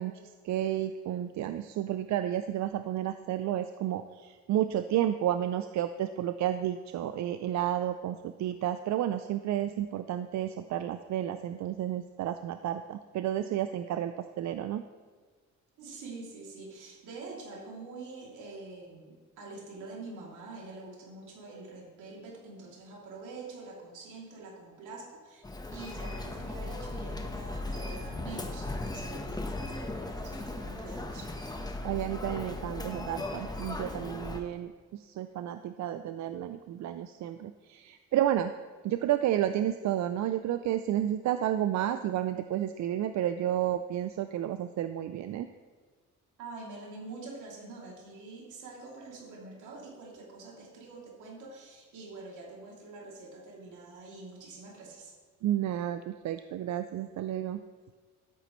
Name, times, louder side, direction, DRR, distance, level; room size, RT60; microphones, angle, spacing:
voice 1, 0.0-14.8 31.8-38.5 38.8-45.5 55.4-57.6, right 11 dB, 70° right, 10 dB, 0.5 m, -31 dB
voice 2, 15.8-25.4 25.7-31.3 46.4-55.1, right 3 dB, 85° right, -2 dB, 2.8 m, -46 dB
Human voice, 25.4-34.4, left 2 dB, 15° left, 1.0 m, -37 dB
13.0 x 8.2 x 3.1 m, 1.5 s
cardioid pair, 90°, 30 cm